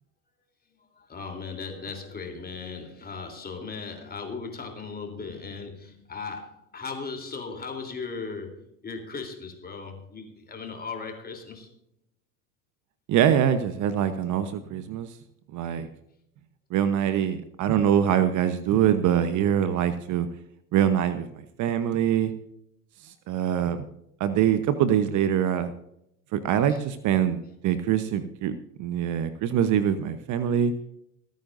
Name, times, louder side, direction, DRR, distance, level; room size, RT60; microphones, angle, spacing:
voice 1, 0.9-11.7 26.7-26.8, left 4 dB, 20° left, 4 dB, 3.4 m, -37 dB
voice 2, 13.1-15.1 15.5-15.9 16.7-20.3 20.7-22.3 23.0-23.9 24.2-25.7 26.3-30.7, right 9 dB, 45° right, 12 dB, 1.0 m, -24 dB
27.0 x 9.3 x 2.6 m, 0.77 s
hypercardioid pair, 80°, 43 cm